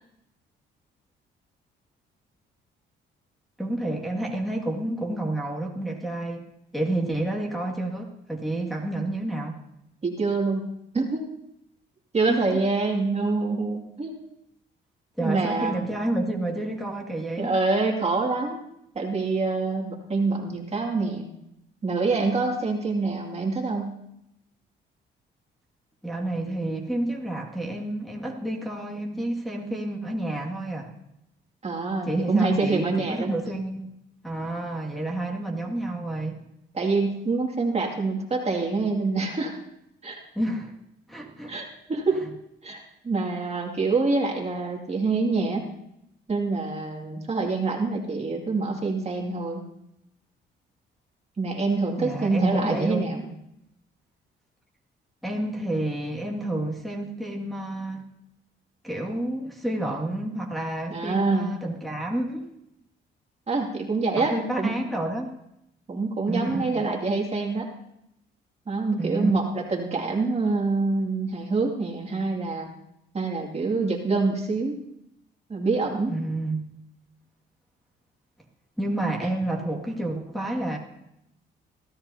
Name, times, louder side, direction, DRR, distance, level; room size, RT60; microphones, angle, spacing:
voice 1, 3.6-6.5 6.7-9.6 12.3-12.4 15.2-17.5 26.0-30.9 32.1-33.9 34.2-36.4 40.4-40.7 41.1-41.6 52.0-53.1 55.2-58.0 58.8-62.5 64.1-65.4 66.3-66.8 69.0-69.3 76.1-76.6 78.8-80.8, right 1 dB, ahead, -3 dB, 2.0 m, -29 dB
voice 2, 10.0-10.7 10.9-11.3 12.1-14.2 15.2-15.8 17.4-18.7 18.9-21.3 21.8-24.0 31.6-33.4 36.7-39.5 40.0-40.2 41.5-42.2 42.6-45.6 46.3-49.6 51.4-53.3 60.9-61.5 63.5-64.7 65.9-67.7 68.7-72.7 73.1-74.8 75.5-76.2 79.2-79.3 79.7-79.8, right 3 dB, 30° right, 0 dB, 2.3 m, -26 dB
22.0 x 13.5 x 2.8 m, 0.83 s
cardioid pair, 90°, 20 cm